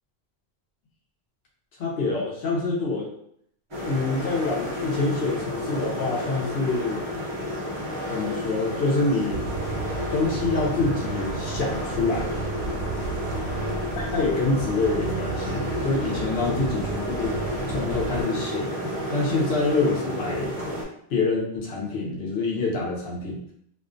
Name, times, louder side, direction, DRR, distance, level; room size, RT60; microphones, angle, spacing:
voice 1, 1.8-3.1 3.8-7.1 8.1-9.4 10.1-12.3 14.0-17.4 17.7-18.7 19.1-20.5 21.1-23.4, left 3 dB, 80° left, -3 dB, 1.0 m, -26 dB
sound 1, 3.7-20.8, left 1 dB, 35° right, 0.6 m, -31 dB
sound 2, 9.3-18.2, right 4 dB, 90° right, 0.9 m, -33 dB
2.4 x 2.2 x 2.5 m, 0.68 s
omnidirectional pair, 1.1 m